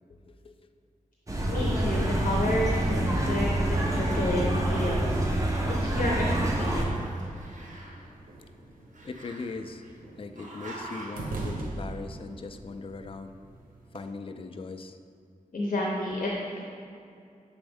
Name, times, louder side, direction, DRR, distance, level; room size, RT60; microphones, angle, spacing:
voice 1, 0.2-0.5 9.0-9.8 10.2-13.4 13.9-15.0, left 4 dB, 40° left, 8 dB, 0.3 m, -39 dB
sound 1, 1.3-6.8, right 1 dB, 25° right, 0.9 m, -26 dB
voice 2, 1.5-5.2 5.6-7.0 15.5-16.6, left 1 dB, 65° left, -2 dB, 0.8 m, -30 dB
Growling, 6.6-8.1 8.9-9.9 10.4-11.3, right 1 dB, 65° right, 1.0 m, -45 dB
sound 2, 7.3-14.0, right 2 dB, 85° right, 0.7 m, -41 dB
7.1 x 4.3 x 3.5 m, 2.5 s
wide cardioid pair, 85°, 14 cm